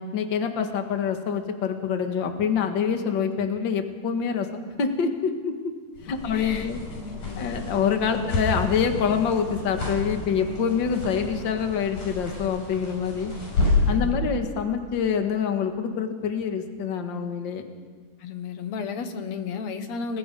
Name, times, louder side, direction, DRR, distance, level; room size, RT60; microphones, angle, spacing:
voice 1, 0.0-5.7 6.1-6.8 7.4-13.3 13.9-17.6, left 6 dB, 45° left, 5 dB, 2.0 m, -26 dB
sound 1, 5.9-14.0, left 3 dB, 90° left, 8.1 m, -30 dB
voice 2, 6.3-6.7 7.1-7.5 8.1-8.3 13.9-14.2 18.2-20.2, left 5 dB, 65° left, 8 dB, 2.4 m, -33 dB
29.5 x 21.5 x 5.4 m, 1.6 s
omnidirectional pair, 3.4 m